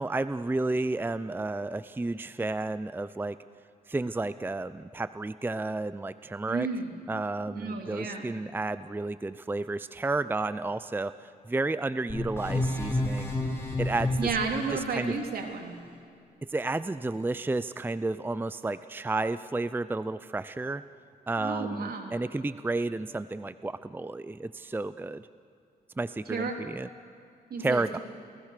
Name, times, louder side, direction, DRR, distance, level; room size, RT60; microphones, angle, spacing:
voice 1, 0.0-3.4 3.9-6.7 7.1-13.3 13.8-14.3 14.7-15.2 16.5-20.8 21.3-25.3 26.0-26.9 27.6-28.0, right 2 dB, 10° right, 14 dB, 0.5 m, -31 dB
voice 2, 6.5-6.9 7.5-8.3 14.2-15.8 21.4-22.1 26.3-26.5 27.5-28.0, right 4 dB, 70° right, 3 dB, 3.4 m, -32 dB
sound 1, 12.1-14.8, left 2 dB, 15° left, 6.0 m, -30 dB
29.0 x 19.0 x 6.7 m, 2.5 s
cardioid pair, 85°, 16 cm